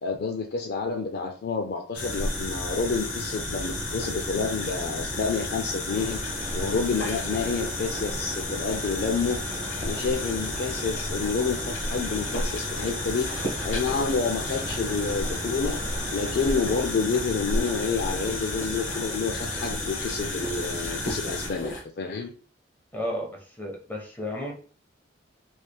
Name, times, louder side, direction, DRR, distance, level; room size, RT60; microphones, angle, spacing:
voice 1, 0.0-6.2 6.5-9.4 9.8-13.3 13.6-15.8 16.1-22.3, left 4 dB, 55° left, 4 dB, 0.4 m, -29 dB
sound 1, 1.9-21.8, left 1 dB, 80° left, 1.0 m, -31 dB
sound 2, 5.9-16.9, right 2 dB, 30° right, 0.6 m, -41 dB
voice 2, 22.9-24.5, left 1 dB, 10° left, -2 dB, 1.1 m, -33 dB
3.5 x 3.2 x 2.3 m, 0.39 s
head